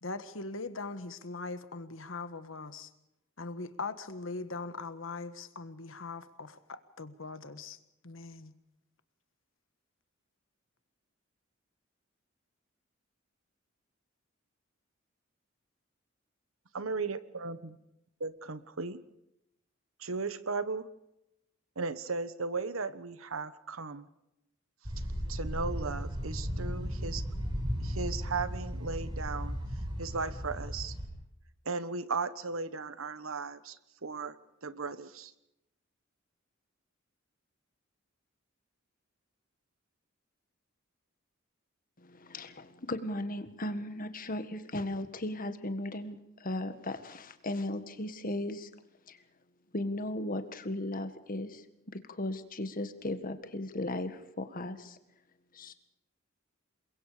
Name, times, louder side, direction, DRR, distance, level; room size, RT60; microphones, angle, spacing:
voice 1, 0.0-2.9 3.4-7.8 8.0-8.5, left 3 dB, 70° left, 1.6 m, -41 dB
voice 2, 16.7-17.7 18.2-19.0 20.0-20.9 21.8-24.0 25.3-27.2 27.8-29.6 30.0-30.9 31.7-33.7 34.0-34.3 34.6-35.3, right 4 dB, 85° right, 1.3 m, -36 dB
sound 1, 24.8-31.1, equal, 25° right, 6.3 m, -35 dB
voice 3, 42.0-48.7 49.1-49.2 49.7-51.6 51.9-55.0 55.5-55.7, left 1 dB, 45° left, 1.7 m, -36 dB
29.0 x 22.5 x 5.1 m
head